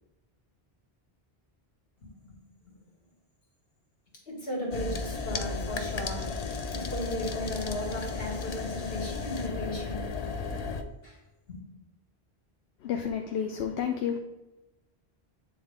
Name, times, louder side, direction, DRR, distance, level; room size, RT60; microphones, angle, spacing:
voice 1, 2.0-2.4 2.6-2.7 4.3-6.3 6.7-10.1 11.0-11.2 11.5-11.6, left 1 dB, 70° left, 2.1 m, -36 dB
sound 1, 4.7-10.8, left 4 dB, 50° left, 0.6 m, -34 dB
voice 2, 12.8-14.2, left 8 dB, 85° left, 0.9 m, -30 dB
8.5 x 4.0 x 3.6 m
omnidirectional pair, 1.0 m